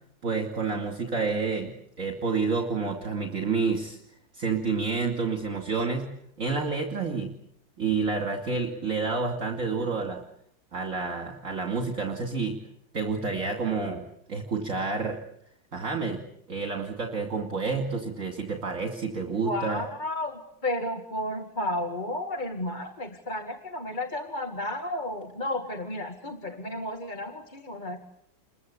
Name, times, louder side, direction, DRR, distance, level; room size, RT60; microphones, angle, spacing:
voice 1, 0.2-4.0 4.3-6.0 6.4-7.3 7.8-10.2 10.7-12.6 12.9-14.0 14.3-15.2 15.7-16.2 16.5-19.8, right 4 dB, 45° right, 3 dB, 2.9 m, -29 dB
voice 2, 19.4-28.0, left 1 dB, 25° left, 5 dB, 2.2 m, -32 dB
29.5 x 23.0 x 8.5 m, 0.75 s
omnidirectional pair, 2.1 m